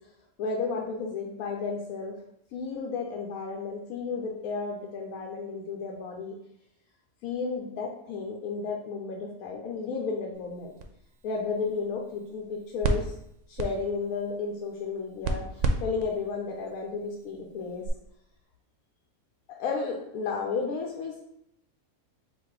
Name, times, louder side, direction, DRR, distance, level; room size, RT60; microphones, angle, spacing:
voice 1, 0.4-2.1 2.5-6.4 7.2-10.7 11.2-13.1 13.5-17.8 19.5-21.2, left 4 dB, 90° left, 0 dB, 1.1 m, -33 dB
sound 1, 10.3-17.9, right 2 dB, 70° right, 0.9 m, -35 dB
4.0 x 2.5 x 4.7 m, 0.77 s
omnidirectional pair, 1.5 m